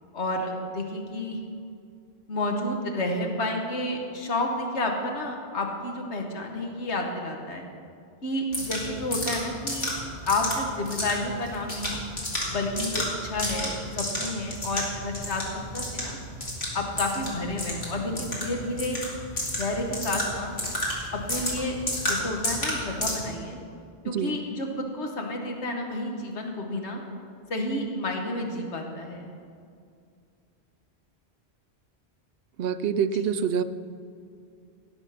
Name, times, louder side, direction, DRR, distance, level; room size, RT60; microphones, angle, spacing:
voice 1, 0.1-1.4 2.3-7.6 8.2-9.9 10.2-12.0 12.5-16.2 16.7-19.0 19.6-20.6 21.1-23.6 24.0-27.0 27.5-29.3, left 2 dB, 85° left, 2 dB, 1.7 m, -30 dB
sound 1, 8.5-23.1, left 1 dB, 70° left, 3.0 m, -32 dB
voice 2, 24.1-24.4 32.6-33.6, right 7 dB, 65° right, 10 dB, 0.7 m, -26 dB
18.0 x 7.1 x 5.8 m, 2.4 s
omnidirectional pair, 1.1 m